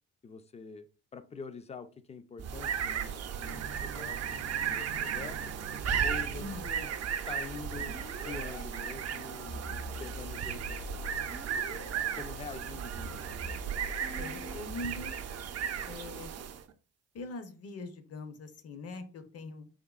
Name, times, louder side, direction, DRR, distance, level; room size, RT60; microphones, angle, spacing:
voice 1, 0.2-0.9 1.1-5.5 6.0-6.9 7.3-10.8 12.2-13.2, left 5 dB, 20° left, 0.4 m, -45 dB
sound 1, 2.4-16.7, right 8 dB, 55° right, 0.5 m, -35 dB
sound 2, 7.8-8.6 9.5-12.0 12.9-14.6, left 1 dB, 90° left, 1.7 m, -44 dB
voice 2, 14.1-15.1 15.8-16.3 17.1-19.7, left 2 dB, 55° left, 0.7 m, -42 dB
3.6 x 3.4 x 2.3 m
cardioid pair, 90°, 30 cm